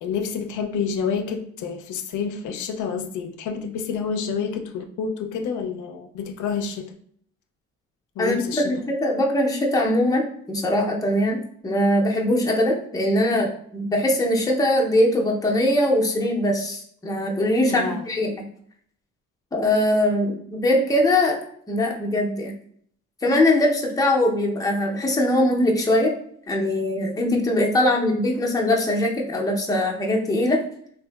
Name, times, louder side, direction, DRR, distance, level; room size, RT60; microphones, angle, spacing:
voice 1, 0.0-6.9 8.2-8.6 17.6-18.0, left 6 dB, 75° left, 5 dB, 0.5 m, -28 dB
voice 2, 8.2-18.3 19.5-21.4 21.7-22.5 23.2-26.1 26.5-30.6, left 1 dB, 10° left, -1 dB, 0.5 m, -21 dB
2.8 x 2.6 x 2.3 m, 0.63 s
cardioid pair, 90°, 30 cm